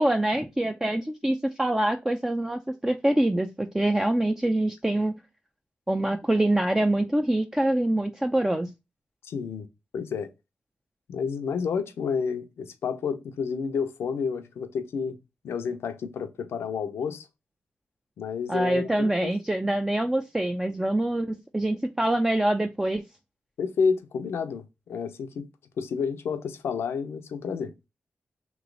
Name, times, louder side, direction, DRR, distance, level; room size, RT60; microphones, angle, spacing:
voice 1, 0.0-5.1 5.9-8.7 18.5-23.0, right 1 dB, 15° right, 0.5 m, -25 dB
voice 2, 9.2-9.7 9.9-10.3 11.1-15.2 15.4-17.3 18.2-19.3 23.6-25.5 25.8-27.7, left 5 dB, 85° left, 0.6 m, -30 dB
3.1 x 3.0 x 3.8 m
cardioid pair, 45°, 4 cm